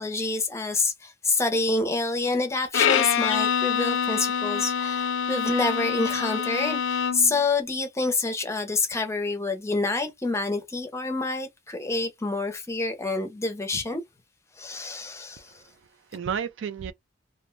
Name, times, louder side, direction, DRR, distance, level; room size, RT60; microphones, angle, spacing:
voice 1, 0.0-14.0 14.6-15.6, left 3 dB, 15° left, 0.5 m, -27 dB
Bowed string instrument, 2.7-7.4, left 7 dB, 65° left, 0.4 m, -25 dB
voice 2, 15.4-16.9, right 7 dB, 65° right, 0.3 m, -33 dB
2.5 x 2.1 x 3.0 m
head